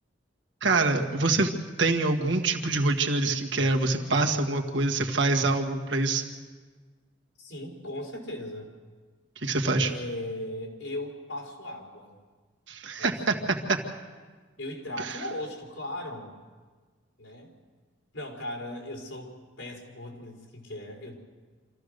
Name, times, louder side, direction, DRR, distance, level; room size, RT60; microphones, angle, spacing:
voice 1, 0.6-1.5 1.8-6.2 9.4-9.9 12.7-13.3 13.7-13.8 15.0-15.2, right 3 dB, 70° right, 3 dB, 1.8 m, -25 dB
voice 2, 7.4-8.7 9.8-12.1 13.0-13.6 14.6-16.3 17.2-17.5 18.1-21.1, left 1 dB, 90° left, 0 dB, 4.6 m, -38 dB
27.0 x 15.0 x 6.6 m, 1.4 s
head